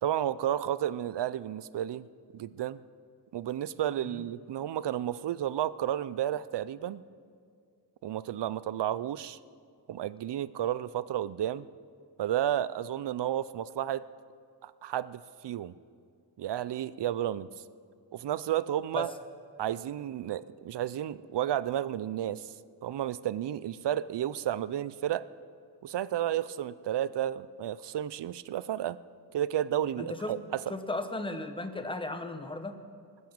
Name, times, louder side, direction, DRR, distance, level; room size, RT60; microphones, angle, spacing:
voice 1, 0.0-2.0 2.3-2.8 3.3-7.0 8.0-9.4 9.9-11.7 12.2-14.0 14.6-15.7 16.4-17.5 18.1-19.1 19.6-22.5 22.8-25.3 25.8-29.0 29.3-30.6, right 11 dB, 80° right, 17 dB, 0.5 m, -32 dB
voice 2, 30.0-30.3 30.7-32.8, left 2 dB, 10° left, 7 dB, 0.9 m, -35 dB
19.5 x 9.5 x 7.3 m, 2.2 s
wide cardioid pair, 150°, 41 cm